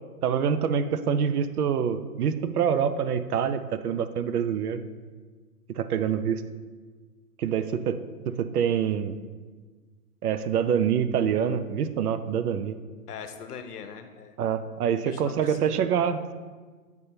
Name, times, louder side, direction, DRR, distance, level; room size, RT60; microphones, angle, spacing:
voice 1, 0.2-4.8 5.8-6.4 7.4-8.0 8.3-9.2 10.2-12.8 14.4-16.3, right 7 dB, 75° right, 12 dB, 0.6 m, -26 dB
voice 2, 13.1-14.3 15.0-15.9, left 7 dB, 80° left, 8 dB, 0.8 m, -41 dB
8.2 x 3.5 x 4.3 m, 1.4 s
hypercardioid pair, 155°, 45 cm